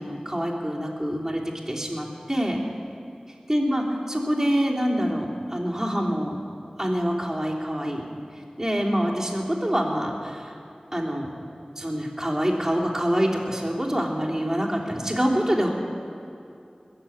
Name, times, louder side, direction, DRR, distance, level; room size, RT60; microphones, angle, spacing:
voice 1, 0.0-1.4 1.7-2.6 3.5-6.4 6.8-8.0 8.6-10.4 10.9-11.3 11.8-15.7, equal, 20° right, -4 dB, 3.4 m, -25 dB
21.5 x 7.7 x 8.7 m, 2.6 s
wide cardioid pair, 40°, 2 cm